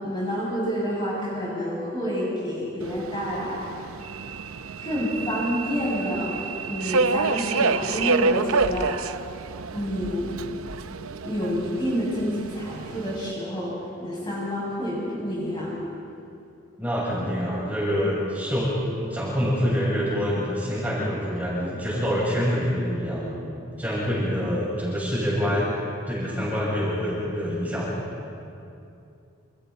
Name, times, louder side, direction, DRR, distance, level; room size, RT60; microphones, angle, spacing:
voice 1, 0.0-3.7 4.8-6.4 6.6-9.0 9.7-10.4 11.2-15.7, equal, 20° left, -7 dB, 7.6 m, -28 dB
Subway metro underground, 2.8-13.3, right 4 dB, 90° right, 0.7 m, -29 dB
voice 2, 16.8-18.8 19.1-23.3 23.8-25.7 26.1-28.0, equal, 10° right, -8 dB, 7.9 m, -26 dB
30.0 x 29.0 x 4.4 m, 2.6 s
head